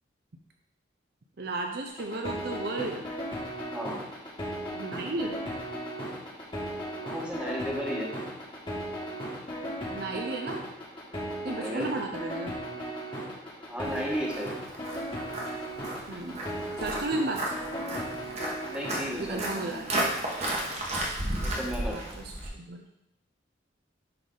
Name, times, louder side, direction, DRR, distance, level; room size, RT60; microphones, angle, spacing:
voice 1, 1.4-3.0 4.7-5.4 9.9-10.6 11.4-12.5 16.1-16.4 16.8-17.4 17.8-18.0 19.2-20.0 21.9-22.8, right 2 dB, 50° right, 3 dB, 0.6 m, -34 dB
sound 1, 1.9-19.0, right 1 dB, 25° left, 1.6 m, -36 dB
voice 2, 7.0-8.1 11.6-11.9 13.7-14.5 18.6-19.8 20.2-20.3 21.4-22.2, equal, 5° right, -3 dB, 1.3 m, -34 dB
Walk footsteps, 13.8-22.5, right 1 dB, 35° right, 1.1 m, -34 dB
10.0 x 3.5 x 3.8 m, 0.84 s
head